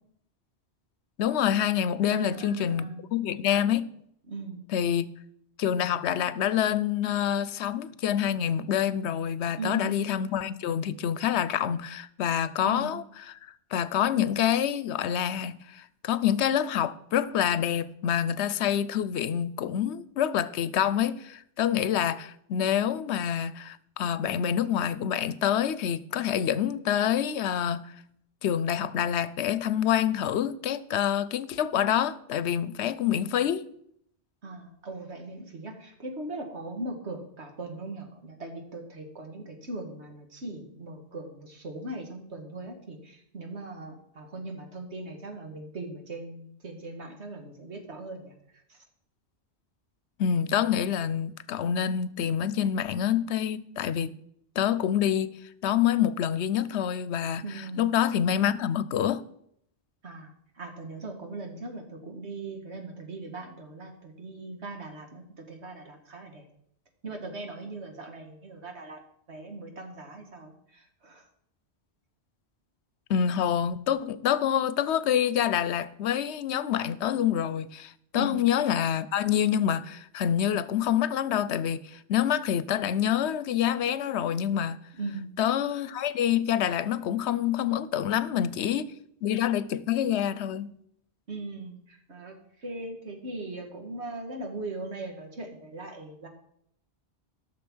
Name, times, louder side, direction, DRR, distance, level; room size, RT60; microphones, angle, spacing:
voice 1, 1.2-2.8 3.1-3.9 4.7-5.1 5.6-13.0 13.7-27.9 28.4-33.7 50.2-54.2 54.6-55.4 55.6-57.4 57.8-59.2 73.1-84.8 85.4-88.9 89.2-90.7, left 9 dB, 80° left, 0.9 m, -27 dB
voice 2, 2.1-3.0 4.3-4.6 9.6-10.0 12.6-13.0 34.4-48.8 57.4-57.9 60.0-66.5 67.0-69.0 69.3-71.3 78.1-78.4 85.0-85.6 91.3-96.3, right 2 dB, 85° right, 2.1 m, -39 dB
12.0 x 6.6 x 6.2 m
omnidirectional pair, 1.1 m